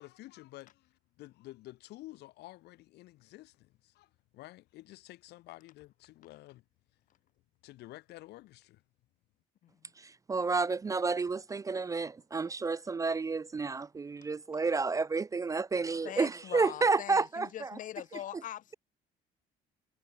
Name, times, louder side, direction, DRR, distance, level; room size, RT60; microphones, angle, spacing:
voice 1, 0.0-6.6 7.6-8.8, left 17 dB, 80° left, 1.3 m, -51 dB
voice 2, 10.0-17.7, right 4 dB, 20° right, 0.4 m, -30 dB
voice 3, 16.0-18.7, left 12 dB, 50° left, 0.7 m, -42 dB
cardioid pair, 110°, 17 cm